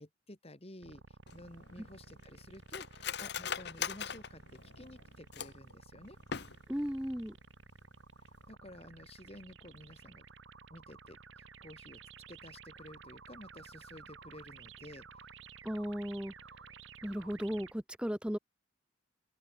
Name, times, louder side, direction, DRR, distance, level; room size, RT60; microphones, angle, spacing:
voice 1, 0.0-6.2 8.5-10.2 10.7-12.0 12.3-15.3, left 1 dB, 30° left, 2.1 m, -52 dB
sound 1, 0.8-17.7, right 5 dB, 70° right, 1.7 m, -54 dB
Cutlery silverware, 1.3-5.7 6.2-6.9 7.2-7.3 7.6-8.0 8.3-8.5, left 8 dB, 55° left, 0.9 m, -41 dB
voice 2, 6.7-7.3 15.6-16.3 17.0-18.4, equal, 5° right, 0.9 m, -36 dB
open air
head